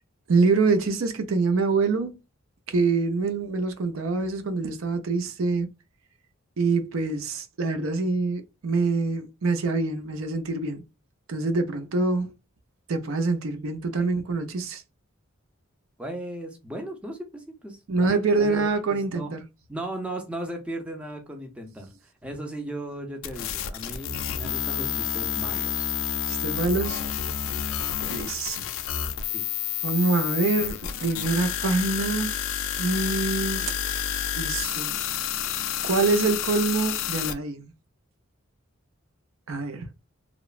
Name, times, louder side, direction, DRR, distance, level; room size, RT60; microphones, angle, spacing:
voice 1, 0.3-2.1 2.7-5.7 6.6-10.8 11.3-12.3 12.9-14.8 17.9-19.4 26.3-27.0 28.1-28.6 29.8-32.3 32.8-33.8 34.4-35.0 35.8-37.7 39.5-39.8, right 3 dB, 70° right, 0.5 m, -25 dB
voice 2, 16.0-19.3 19.7-21.9 22.2-25.9 29.3-29.5, right 1 dB, 5° right, 0.5 m, -37 dB
sound 1, 23.2-37.3, left 9 dB, 65° left, 0.3 m, -29 dB
3.0 x 2.0 x 2.3 m
head